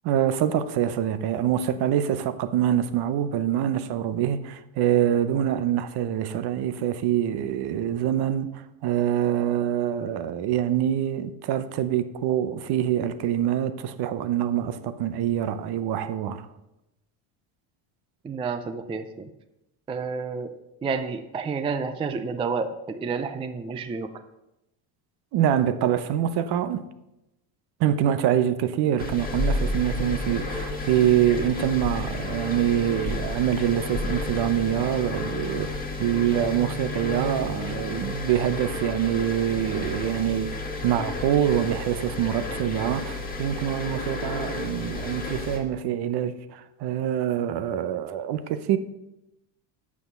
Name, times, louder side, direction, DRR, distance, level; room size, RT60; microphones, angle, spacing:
voice 1, 0.0-16.5 25.3-26.9 27.8-48.8, right 10 dB, 55° right, 0.9 m, -25 dB
voice 2, 18.2-19.3 19.9-20.5 20.8-24.1, right 5 dB, 15° right, 0.4 m, -30 dB
sound 1, 29.0-45.6, left 2 dB, 20° left, 1.7 m, -31 dB
8.4 x 7.3 x 6.7 m
cardioid pair, 140°, 46 cm